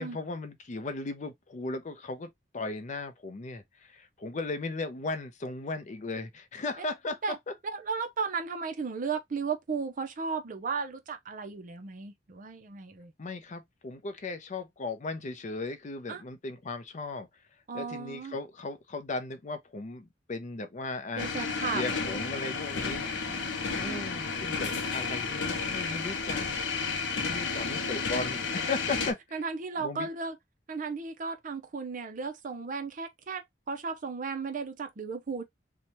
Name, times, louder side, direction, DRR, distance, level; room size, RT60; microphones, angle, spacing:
voice 1, 0.0-7.2 13.2-17.3 17.7-21.3 21.7-23.3 23.8-26.5 27.1-29.4 29.8-30.1, left 3 dB, 40° left, 0.5 m, -37 dB
voice 2, 7.7-13.1 16.1-16.2 17.7-18.4 21.2-21.8 23.3-24.0 29.3-30.4 30.7-35.4, right 5 dB, 45° right, 0.5 m, -35 dB
sound 1, 21.2-29.1, left 4 dB, 85° left, 0.7 m, -32 dB
2.8 x 2.2 x 3.0 m
head